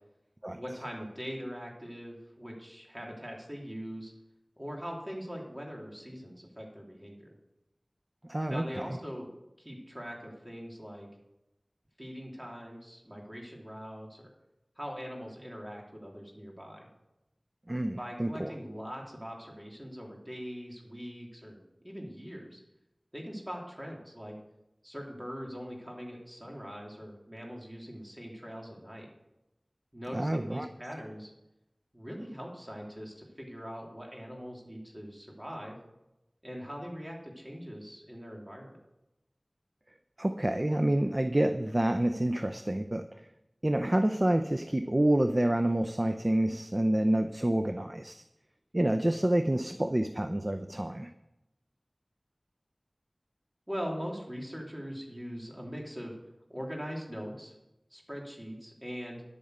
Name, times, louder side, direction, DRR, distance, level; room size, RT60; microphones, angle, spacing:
voice 1, 0.5-4.1 4.6-7.4 8.5-9.3 9.6-11.1 12.0-14.3 14.8-16.9 17.9-21.6 21.8-22.6 23.1-24.4 24.8-29.1 29.9-31.3 31.9-35.8 36.4-38.8 53.7-56.2 56.5-57.5 57.9-59.2, equal, 20° right, -1 dB, 3.6 m, -42 dB
voice 2, 8.3-8.8 17.7-18.5 30.1-30.7 40.2-43.1 43.6-48.2 48.7-51.1, right 1 dB, 35° right, 8 dB, 0.6 m, -28 dB
11.0 x 8.8 x 6.7 m, 0.91 s
wide cardioid pair, 45°, 0 cm